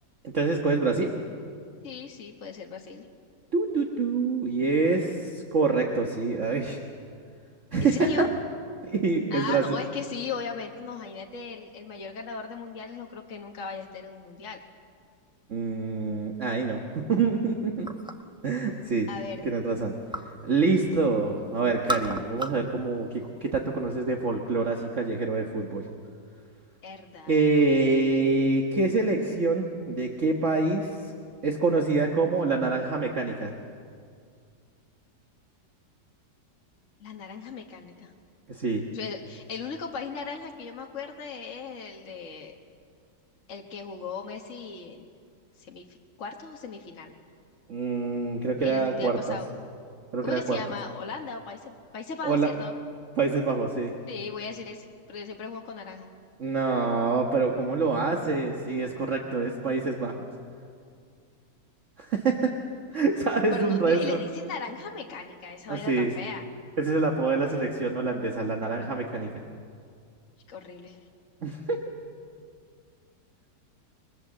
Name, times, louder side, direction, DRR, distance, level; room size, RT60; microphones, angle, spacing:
voice 1, 0.3-1.1 3.5-6.8 7.7-8.3 8.8-9.6 15.5-17.9 18.4-19.1 19.4-19.9 20.4-23.1 23.4-25.8 27.3-31.1 31.4-33.5 38.5-38.8 47.7-49.4 50.1-50.6 52.2-52.5 53.2-53.9 56.4-60.3 62.0-62.5 62.9-64.2 65.7-66.1 66.8-69.4 71.4-71.8, right 3 dB, 45° right, 2 dB, 1.8 m, -26 dB
voice 2, 1.8-3.1 7.8-8.3 9.3-14.6 19.1-19.5 26.8-27.4 37.0-38.1 38.9-42.5 43.5-45.0 45.6-47.1 48.6-49.5 50.2-52.7 54.1-56.1 63.5-66.4 70.5-71.0, left 5 dB, 50° left, 1 dB, 1.8 m, -37 dB
sound 1, 17.8-18.4 18.8-20.4 20.7-21.3 21.6-22.7 23.0-23.8, right 1 dB, 5° right, 0.8 m, -35 dB
29.0 x 22.0 x 7.6 m, 2.2 s
omnidirectional pair, 1.8 m